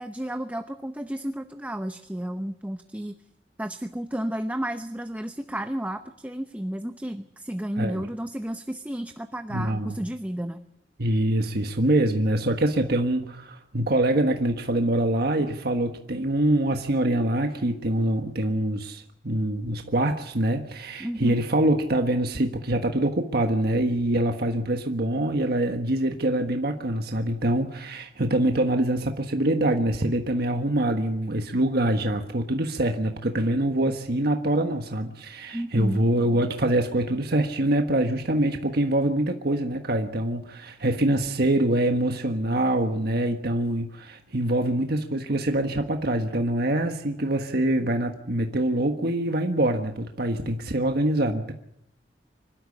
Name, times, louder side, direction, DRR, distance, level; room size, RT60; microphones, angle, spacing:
voice 1, 0.0-3.2 3.6-10.6 21.0-21.4 35.5-36.0, right 1 dB, 10° right, 8 dB, 0.8 m, -32 dB
voice 2, 7.8-8.1 9.5-10.0 11.0-51.5, right 1 dB, 60° right, 4 dB, 1.5 m, -24 dB
25.5 x 12.5 x 9.8 m, 0.80 s
head